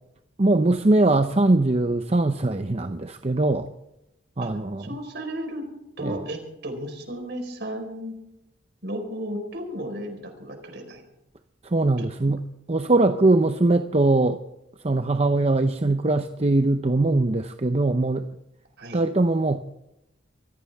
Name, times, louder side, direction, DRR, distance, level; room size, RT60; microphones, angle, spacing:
voice 1, 0.4-3.7 4.4-4.9 6.0-6.2 11.6-14.4 14.8-18.3 18.9-19.6, right 2 dB, 30° right, 8 dB, 0.7 m, -21 dB
voice 2, 4.8-5.7 6.0-8.1 8.8-11.0 13.1-13.2 18.8-19.0, equal, 55° right, 4 dB, 4.6 m, -34 dB
24.0 x 15.5 x 3.5 m, 0.87 s
head